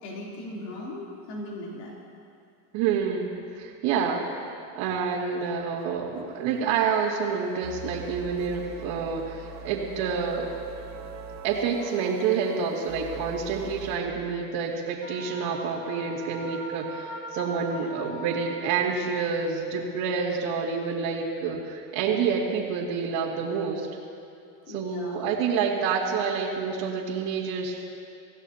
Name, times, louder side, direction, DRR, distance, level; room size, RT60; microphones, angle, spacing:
voice 1, 0.0-1.9 11.9-12.0 24.7-25.3, left 1 dB, 80° left, -4 dB, 3.5 m, -38 dB
voice 2, 2.7-4.3 4.7-10.5 11.4-23.9 24.7-27.9, right 6 dB, 65° right, -8 dB, 2.4 m, -28 dB
sound 1, 5.4-5.5 5.8-5.9 6.1-14.0, right 3 dB, 35° right, 1.6 m, -42 dB
Wind instrument woodwind instrument, 15.0-19.1, equal, 30° left, 4.7 m, -40 dB
25.5 x 15.5 x 2.9 m, 2.5 s
supercardioid pair, 120°, 49 cm